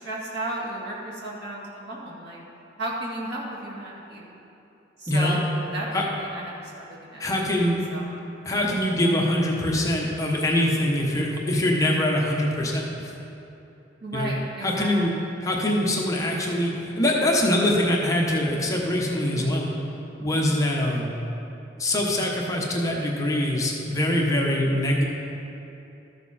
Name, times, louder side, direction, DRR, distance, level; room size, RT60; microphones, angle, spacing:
voice 1, 0.0-2.4 2.8-4.3 5.0-5.9 6.2-8.0 8.6-8.7 14.0-15.0, right 1 dB, 60° right, -5 dB, 2.0 m, -34 dB
voice 2, 7.2-7.8 8.4-13.1 14.1-14.3 14.6-15.1 15.4-19.7 20.2-21.2 21.8-25.0, left 1 dB, 20° left, -2 dB, 1.1 m, -23 dB
13.5 x 7.0 x 4.2 m, 2.9 s
head